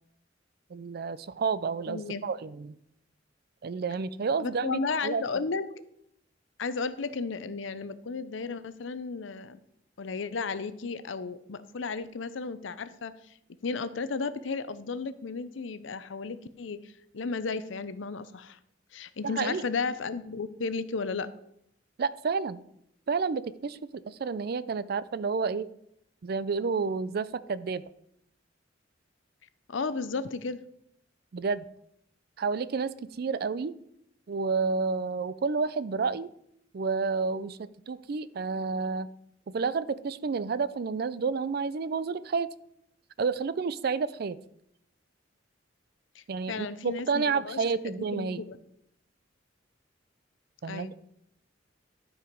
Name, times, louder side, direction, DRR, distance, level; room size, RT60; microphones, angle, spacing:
voice 1, 0.7-2.8 3.6-5.2 19.2-19.6 22.0-22.6 23.1-25.7 26.2-27.8 31.3-31.7 32.4-33.7 34.3-36.3 36.7-39.1 39.5-42.5 43.2-44.4 46.3-48.4 50.6-50.9, right 5 dB, 55° right, 17 dB, 0.4 m, -30 dB
voice 2, 1.9-2.2 4.4-5.6 6.6-9.6 10.0-13.1 13.6-18.6 18.9-21.3 29.7-30.6 46.1-48.6 50.7-50.9, left 4 dB, 80° left, 14 dB, 0.6 m, -34 dB
12.0 x 4.8 x 5.2 m, 0.76 s
head